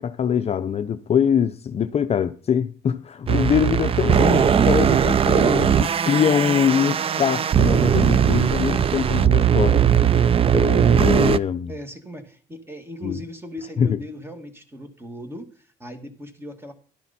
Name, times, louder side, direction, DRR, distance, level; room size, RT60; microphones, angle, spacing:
voice 1, 0.0-9.9 10.5-11.7 13.0-13.2 13.8-14.0, left 8 dB, 40° left, 0.6 m, -23 dB
sound 1, 3.3-11.4, right 8 dB, 35° right, 0.5 m, -19 dB
voice 2, 11.7-16.7, left 1 dB, 15° right, 2.1 m, -38 dB
12.0 x 10.5 x 4.2 m
cardioid pair, 110°, 17 cm